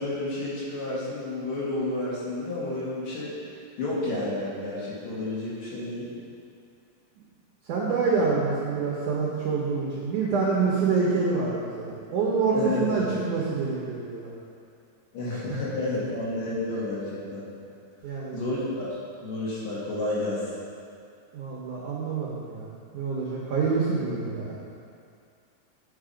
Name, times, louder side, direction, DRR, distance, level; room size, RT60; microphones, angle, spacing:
voice 1, 0.0-6.1 12.5-13.1 15.1-17.4 18.3-18.9 19.2-20.5, left 2 dB, 60° left, -8 dB, 3.3 m, -31 dB
voice 2, 7.7-14.3 15.5-15.6 18.0-18.4 21.3-22.7 22.9-24.5, right 4 dB, 70° right, -5 dB, 2.0 m, -26 dB
9.5 x 5.8 x 5.0 m, 2.4 s
omnidirectional pair, 4.6 m